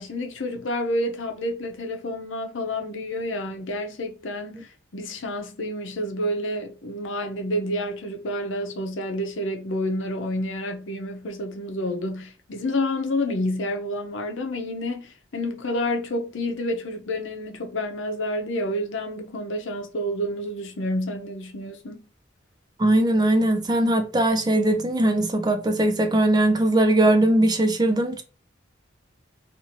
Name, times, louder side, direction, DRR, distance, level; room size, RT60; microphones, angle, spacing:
voice 1, 0.0-22.1, left 1 dB, 80° left, 0.7 m, -29 dB
voice 2, 22.8-28.2, right 1 dB, 20° right, 0.4 m, -20 dB
2.7 x 2.5 x 2.9 m
head